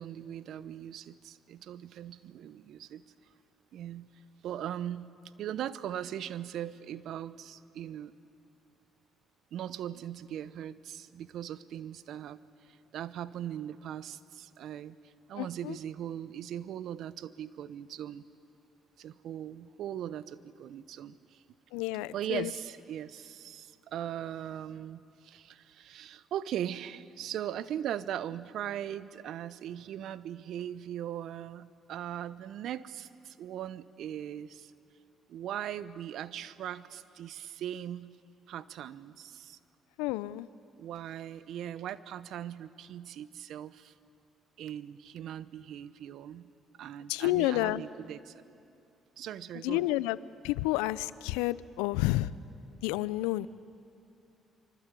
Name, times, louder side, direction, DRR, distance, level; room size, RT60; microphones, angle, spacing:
voice 1, 0.0-3.0 3.7-4.1 4.4-5.1 5.4-8.1 9.5-18.3 19.0-21.4 22.1-34.7 35.3-38.1 38.5-39.6 40.8-43.9 44.6-46.5 46.8-48.4 49.2-49.9, right 10 dB, 70° right, 16 dB, 0.8 m, -39 dB
voice 2, 15.4-15.8 21.7-22.5 40.0-40.5 47.1-47.8 49.6-50.2 50.4-52.3 52.8-53.5, left 17 dB, 85° left, 19 dB, 0.5 m, -30 dB
25.0 x 24.5 x 8.4 m, 2.5 s
hypercardioid pair, 55°, 0 cm